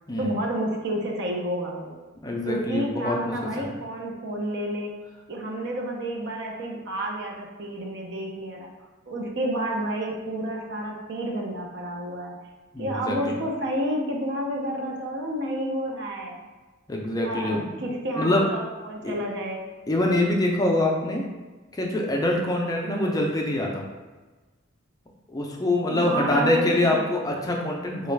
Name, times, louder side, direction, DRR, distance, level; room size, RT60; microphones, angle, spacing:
voice 1, 0.2-2.0 2.4-4.9 5.3-8.7 9.1-12.4 12.8-16.4 17.2-19.6 22.8-23.3 25.9-27.1, right 1 dB, 60° right, 0 dB, 0.6 m, -30 dB
voice 2, 2.2-3.7 12.7-13.4 16.9-17.7 18.2-18.4 19.0-19.1 19.9-21.2 21.7-23.8 25.3-28.1, left 1 dB, 20° left, 0 dB, 0.4 m, -25 dB
3.9 x 2.3 x 3.2 m, 1.2 s
head